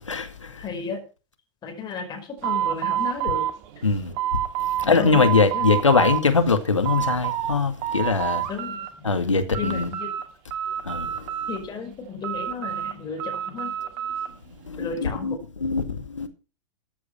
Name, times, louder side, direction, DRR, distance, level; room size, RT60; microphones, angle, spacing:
voice 1, 0.1-0.5 3.8-4.1 4.8-8.5 9.0-9.9 10.8-11.1 14.7-16.3, left 4 dB, 85° left, 2.2 m, -22 dB
voice 2, 0.6-1.0 1.6-3.4 4.8-5.1 5.5-5.7 8.5-8.8 9.6-10.1 11.5-13.7 14.8-15.3, left 5 dB, 25° left, 5.1 m, -33 dB
sound 1, 2.4-4.9 5.1-6.2 6.6-7.5 7.8-8.9 9.2-10.2 10.5-11.8 12.2-14.3, right 11 dB, 45° right, 2.3 m, -28 dB
14.5 x 8.5 x 5.7 m
figure-of-eight pair, 100°, 15 cm